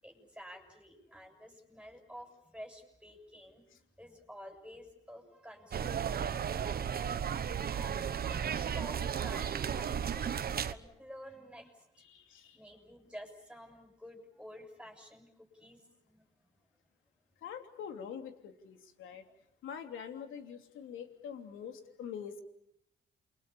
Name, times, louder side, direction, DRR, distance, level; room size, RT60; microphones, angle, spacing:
voice 1, 0.0-3.7 4.0-6.9 7.6-11.9 12.5-15.3 15.5-16.2, equal, 5° right, 3 dB, 7.1 m, -51 dB
sound 1, 5.7-10.7, right 8 dB, 50° right, 1.2 m, -34 dB
voice 2, 12.0-12.6 17.4-19.2 19.6-22.4, left 7 dB, 85° left, 6 dB, 3.2 m, -45 dB
28.5 x 24.0 x 7.0 m, 0.77 s
cardioid pair, 90°, 20 cm